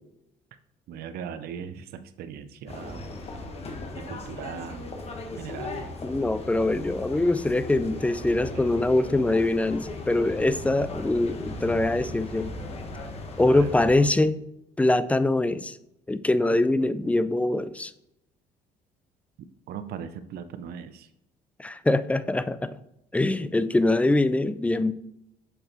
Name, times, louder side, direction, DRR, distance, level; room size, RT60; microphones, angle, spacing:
voice 1, 0.9-3.0 3.9-4.9 5.4-6.0 8.5-8.7 13.4-13.7 19.7-21.1, right 7 dB, 70° right, 11 dB, 0.6 m, -39 dB
sound 1, 2.7-14.1, left 2 dB, 35° left, 1.2 m, -37 dB
voice 2, 6.0-12.5 13.4-14.4 14.8-15.8 16.1-17.9 21.6-22.8 23.1-24.9, left 2 dB, 10° left, 14 dB, 0.3 m, -23 dB
6.0 x 5.3 x 4.3 m, 0.83 s
cardioid pair, 110°, 17 cm